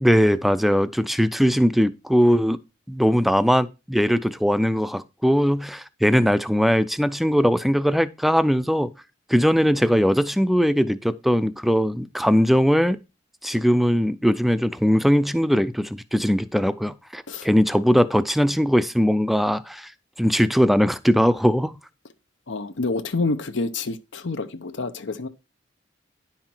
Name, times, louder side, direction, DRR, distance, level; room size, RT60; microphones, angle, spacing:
voice 1, 0.0-2.6 2.9-8.9 9.3-13.0 13.4-19.9 20.2-21.7, equal, ahead, 0.4 m, -20 dB
voice 2, 22.5-25.3, left 3 dB, 75° left, 0.8 m, -28 dB
10.5 x 5.8 x 4.4 m
head